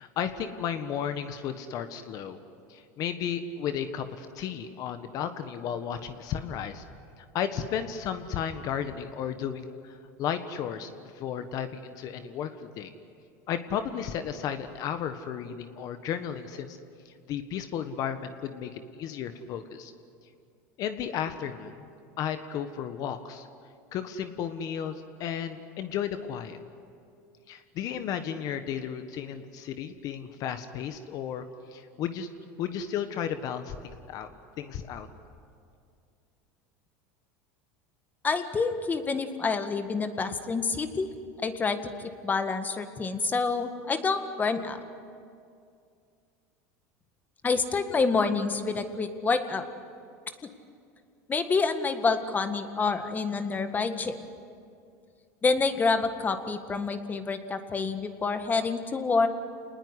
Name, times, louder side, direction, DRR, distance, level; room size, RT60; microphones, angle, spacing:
voice 1, 0.0-2.4 2.7-6.8 7.2-12.9 13.5-16.8 17.0-19.9 20.8-21.9 22.2-23.5 23.9-26.6 27.5-31.4 31.7-32.3 32.6-34.3 34.6-35.1, left 8 dB, 50° left, 9 dB, 1.5 m, -34 dB
voice 2, 38.2-41.1 41.4-44.8 47.4-49.6 51.3-54.2 55.4-59.3, left 4 dB, 20° left, 8 dB, 1.8 m, -27 dB
27.5 x 20.0 x 9.9 m, 2.4 s
supercardioid pair, 115°, 8 cm